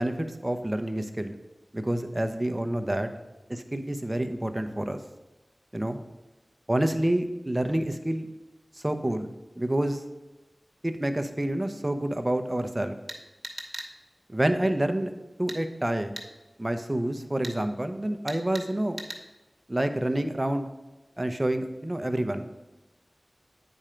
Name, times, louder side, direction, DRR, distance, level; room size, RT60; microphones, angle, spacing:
voice 1, 0.0-1.4 1.7-3.1 3.5-5.0 5.7-6.0 6.7-8.3 8.8-9.3 9.6-10.0 10.8-12.9 14.3-15.1 15.4-16.1 16.6-19.0 19.7-20.7 21.2-22.5, right 1 dB, 25° right, 7 dB, 0.8 m, -28 dB
sound 1, 13.1-13.9 15.5-15.6 16.2-16.3 17.4-17.6 18.3-18.7 19.0-19.2, right 1 dB, 50° right, 1.1 m, -38 dB
8.9 x 4.4 x 5.1 m, 1.1 s
wide cardioid pair, 45°, 0 cm